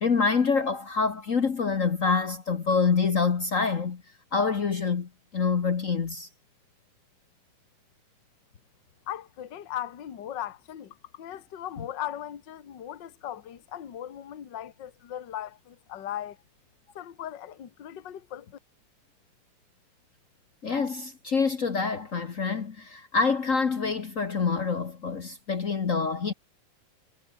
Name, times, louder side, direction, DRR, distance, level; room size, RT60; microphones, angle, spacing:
voice 1, 0.0-4.0 4.3-6.3 11.8-11.9 20.6-26.3, left 5 dB, 90° left, 0.7 m, -26 dB
voice 2, 9.1-16.4 16.9-18.6, left 11 dB, 45° left, 1.7 m, -38 dB
omnidirectional pair, 3.9 m